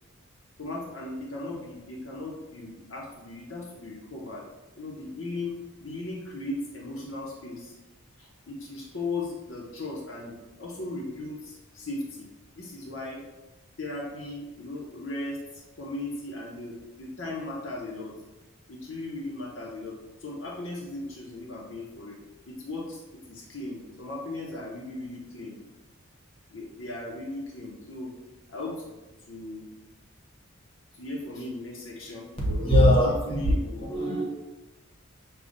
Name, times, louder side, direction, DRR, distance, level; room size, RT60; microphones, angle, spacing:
voice 1, 0.6-4.4 4.8-7.8 8.2-12.3 12.6-13.2 13.8-18.1 18.7-22.2 22.5-25.6 26.5-28.1 28.5-28.9 29.3-29.7 30.9-32.3 33.0-33.9, left 2 dB, 65° left, -3 dB, 0.8 m, -37 dB
voice 2, 32.4-33.5 33.9-34.2, equal, 25° left, -3 dB, 1.0 m, -21 dB
6.8 x 2.3 x 2.5 m, 1.1 s
head